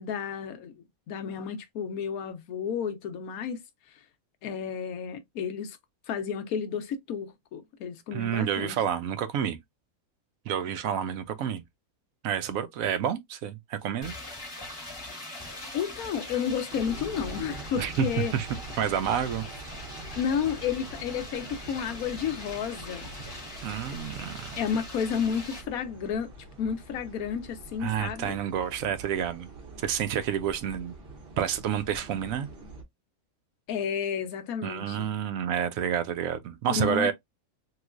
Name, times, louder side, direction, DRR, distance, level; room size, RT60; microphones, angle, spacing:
voice 1, 0.0-3.6 4.4-5.8 6.1-8.8 15.7-18.3 20.2-23.1 24.6-26.3 26.6-28.4 33.7-35.1 36.7-37.1, left 7 dB, 75° left, 1.1 m, -31 dB
voice 2, 8.1-9.6 10.5-11.6 12.2-14.1 17.8-18.1 18.3-18.5 18.8-19.4 23.6-24.6 27.8-29.5 29.8-30.9 31.4-32.5 34.6-37.1, right 9 dB, 70° right, 1.0 m, -29 dB
sound 1, 14.0-25.6, left 2 dB, 20° left, 0.9 m, -42 dB
sound 2, 16.7-32.8, right 2 dB, 45° right, 1.0 m, -44 dB
3.1 x 3.0 x 2.4 m
omnidirectional pair, 1.6 m